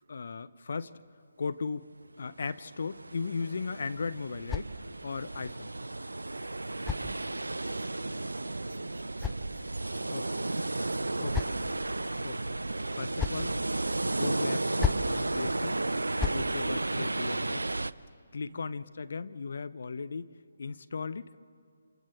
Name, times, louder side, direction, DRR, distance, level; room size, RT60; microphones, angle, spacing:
voice 1, 0.1-0.9 1.4-1.9 2.2-4.7 5.0-5.7 10.1-10.4 11.2-11.6 12.2-12.6 12.9-13.6 14.0-15.8 16.3-17.6 18.3-20.3 20.6-21.4, left 4 dB, 60° left, 14 dB, 0.6 m, -37 dB
sound 1, 2.5-17.9, right 2 dB, 85° right, 0.5 m, -33 dB
sound 2, 3.6-5.2 6.2-7.7 8.7-10.0 10.8-11.9 12.8-13.5 14.5-15.2 15.9-16.5, left 7 dB, 10° left, 0.5 m, -37 dB
voice 2, 6.5-6.9 7.2-11.6 12.2-12.3 15.5-15.9 18.4-18.7, right 3 dB, 65° right, 3 dB, 3.0 m, -56 dB
28.0 x 27.5 x 4.5 m, 2.3 s
figure-of-eight pair, 145°, 0 cm